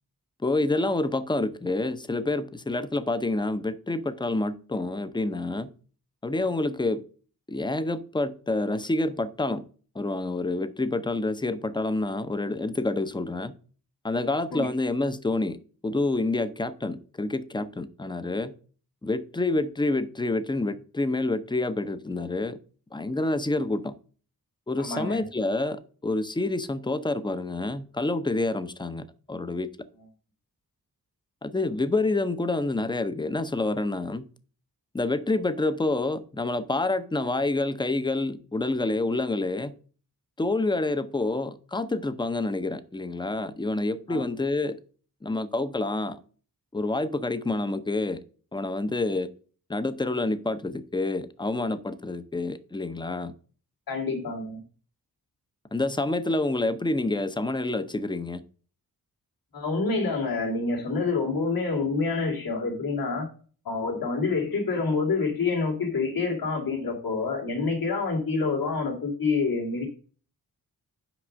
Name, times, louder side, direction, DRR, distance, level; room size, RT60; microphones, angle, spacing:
voice 1, 0.4-5.7 6.2-7.0 7.5-9.6 9.9-13.5 14.0-15.6 15.8-18.5 19.0-22.6 22.9-23.9 24.7-29.7 31.4-34.3 34.9-39.7 40.4-44.8 45.2-46.2 46.7-48.2 48.5-49.3 49.7-53.3 55.7-58.4, left 2 dB, 15° left, 13 dB, 0.6 m, -28 dB
voice 2, 24.8-25.3 44.1-44.2 53.9-54.6 59.5-63.3 63.6-69.9, left 4 dB, 75° left, 0 dB, 2.9 m, -27 dB
6.1 x 5.4 x 6.2 m, 0.41 s
wide cardioid pair, 110°, 35 cm